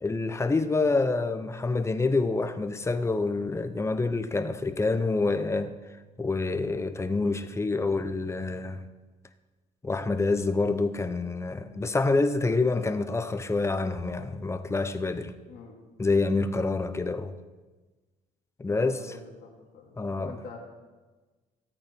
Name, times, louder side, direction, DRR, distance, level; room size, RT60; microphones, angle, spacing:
voice 1, 0.0-5.7 6.2-8.9 9.8-15.3 16.0-17.3 18.6-19.0 20.0-20.4, left 3 dB, 15° left, 0.8 m, -27 dB
voice 2, 15.5-15.8 18.6-19.5 19.7-20.6, left 5 dB, 60° left, 2.6 m, -45 dB
16.0 x 8.7 x 4.6 m
cardioid pair, 110°, 17 cm